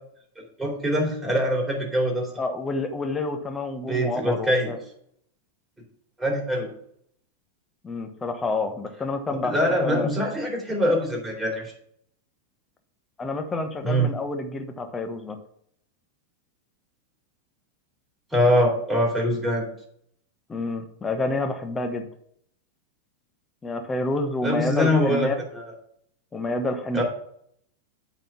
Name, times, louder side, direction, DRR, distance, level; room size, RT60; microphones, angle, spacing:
voice 1, 0.6-2.3 3.9-4.8 6.2-6.7 9.4-11.7 13.8-14.1 18.3-19.7 24.4-25.6 26.9-27.0, equal, 5° right, -3 dB, 3.8 m, -23 dB
voice 2, 2.4-4.8 7.8-10.1 13.2-15.4 20.5-22.1 23.6-25.4 26.3-27.0, left 2 dB, 15° left, 6 dB, 1.2 m, -28 dB
8.7 x 4.2 x 7.1 m, 0.68 s
figure-of-eight pair, 95°, 0 cm